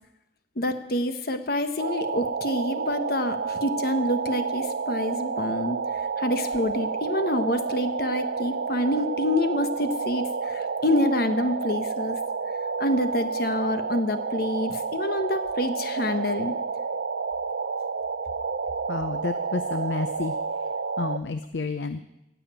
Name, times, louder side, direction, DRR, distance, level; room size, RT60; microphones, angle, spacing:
voice 1, 0.6-5.8 6.2-12.2 12.8-16.5, left 1 dB, 55° left, 9 dB, 1.2 m, -27 dB
sound 1, 1.8-21.2, right 5 dB, 70° right, 0.5 m, -30 dB
voice 2, 18.9-20.3 21.0-22.0, left 3 dB, 80° left, 11 dB, 0.6 m, -30 dB
16.0 x 7.0 x 9.0 m, 0.88 s
head